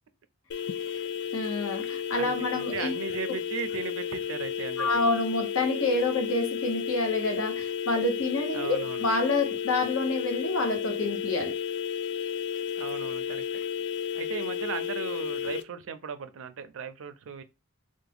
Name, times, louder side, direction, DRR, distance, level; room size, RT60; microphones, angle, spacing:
sound 1, 0.5-15.6, left 8 dB, 55° left, 0.3 m, -32 dB
voice 1, 1.3-2.9 4.8-11.5, left 2 dB, 80° left, 1.0 m, -28 dB
voice 2, 2.2-4.9 8.5-9.1 12.8-13.6 14.1-17.4, right 6 dB, 70° right, 0.4 m, -37 dB
3.3 x 2.1 x 3.4 m
head